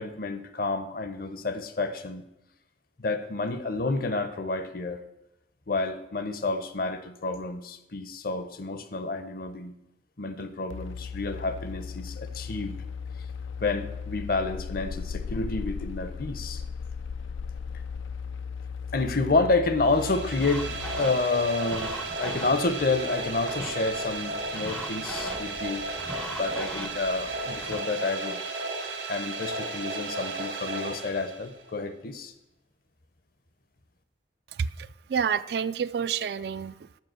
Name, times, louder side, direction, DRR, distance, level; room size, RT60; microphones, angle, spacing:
voice 1, 0.0-2.3 3.0-5.0 5.7-9.7 10.2-12.7 13.6-16.6 18.9-25.8 26.4-28.4 29.1-32.3, left 3 dB, 50° left, 11 dB, 0.7 m, -29 dB
sound 1, 10.7-21.0, left 5 dB, 85° left, 0.3 m, -36 dB
sound 2, 19.8-31.7, right 3 dB, 80° right, 1.8 m, -34 dB
sound 3, 20.4-27.8, left 1 dB, 5° left, 0.5 m, -41 dB
voice 2, 34.5-37.0, right 7 dB, 55° right, 15 dB, 0.3 m, -29 dB
7.5 x 5.7 x 7.6 m, 0.89 s
head